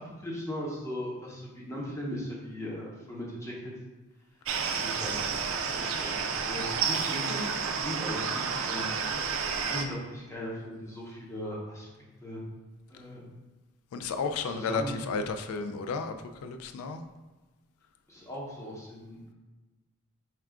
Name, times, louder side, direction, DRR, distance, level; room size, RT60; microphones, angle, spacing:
voice 1, 0.2-3.6 4.7-5.2 5.6-8.9 9.6-11.9 12.2-12.4 12.9-13.2 14.4-14.9 18.1-19.2, equal, 15° left, -5 dB, 0.7 m, -38 dB
sound 1, 4.4-9.8, right 6 dB, 65° right, 0.4 m, -30 dB
voice 2, 13.9-16.1 16.4-17.0, left 4 dB, 75° left, 7 dB, 0.3 m, -32 dB
4.4 x 2.3 x 3.6 m, 1.2 s
head